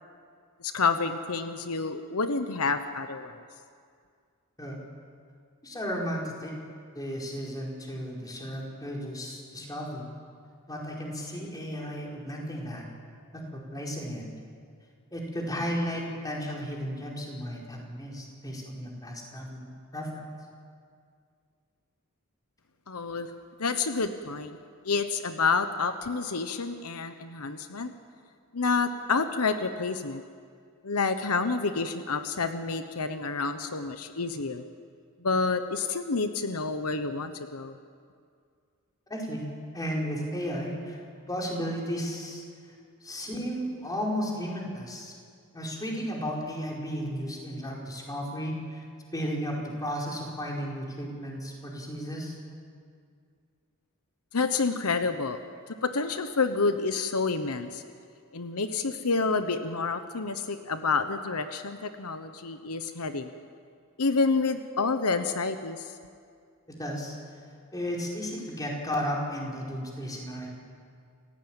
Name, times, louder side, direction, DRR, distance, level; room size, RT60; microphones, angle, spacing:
voice 1, 0.6-3.4 22.9-23.3 23.6-24.6 24.8-27.9 28.5-30.2 30.8-34.6 35.2-37.7 54.3-55.4 55.7-57.8 58.3-63.3 64.0-65.9, left 4 dB, 80° left, 9 dB, 1.1 m, -29 dB
voice 2, 5.6-6.5 6.9-10.1 10.7-12.8 13.3-14.3 15.1-20.2 39.1-39.4 39.7-41.0 41.3-42.4 43.0-45.1 45.5-48.8 49.1-52.3 66.7-67.2 67.7-70.5, equal, 15° left, -2 dB, 4.8 m, -34 dB
29.0 x 16.0 x 9.0 m, 2.2 s
head